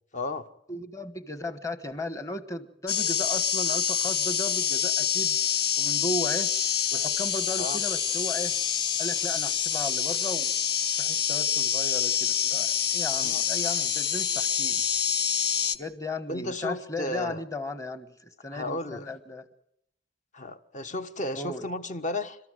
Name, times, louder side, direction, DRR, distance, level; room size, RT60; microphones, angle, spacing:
voice 1, 0.1-0.5 7.6-7.8 13.2-13.4 16.3-17.4 18.5-19.1 20.3-22.4, left 2 dB, 40° left, 1.3 m, -33 dB
voice 2, 0.7-5.4 5.8-6.5 6.9-8.5 9.0-10.5 11.0-14.8 15.8-18.1 18.4-19.4 21.3-21.6, left 1 dB, 15° left, 1.4 m, -36 dB
sound 1, 2.9-15.8, left 8 dB, 60° left, 1.2 m, -26 dB
29.5 x 13.5 x 9.3 m
head